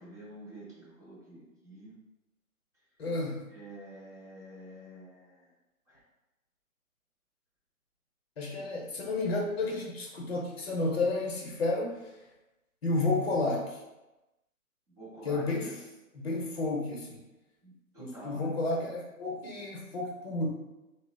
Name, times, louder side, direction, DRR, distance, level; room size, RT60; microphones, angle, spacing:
voice 1, 0.0-2.0 3.5-5.5 5.9-6.0 14.9-15.7 17.6-18.6, right 1 dB, 10° right, -12 dB, 0.7 m, -48 dB
voice 2, 3.0-3.4 8.4-12.1 12.8-13.8 15.2-15.7 16.1-17.2 18.0-20.5, left 2 dB, 45° left, -2 dB, 0.8 m, -31 dB
3.7 x 2.0 x 2.2 m, 1.0 s
figure-of-eight pair, 140°, 44 cm